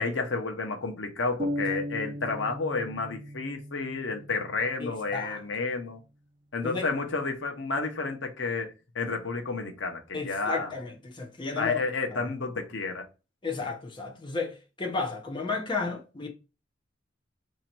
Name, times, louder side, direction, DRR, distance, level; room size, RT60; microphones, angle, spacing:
voice 1, 0.0-6.0 6.5-10.7 11.6-13.1, left 3 dB, 80° left, 0.8 m, -31 dB
sound 1, 1.4-5.2, equal, 25° right, 0.4 m, -37 dB
voice 2, 4.8-5.4 6.6-6.9 10.1-11.8 12.1-12.2 13.4-16.3, left 4 dB, 25° left, 0.7 m, -33 dB
3.1 x 2.8 x 4.4 m
head